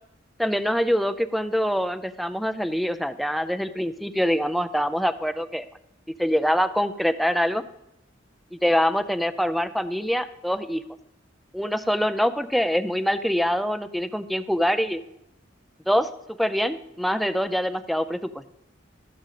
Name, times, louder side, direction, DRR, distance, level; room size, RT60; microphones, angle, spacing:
voice 1, 0.4-5.6 6.2-7.6 8.5-10.8 11.5-15.0 15.9-18.3, equal, ahead, 10 dB, 0.3 m, -24 dB
13.0 x 5.1 x 7.3 m, 0.85 s
head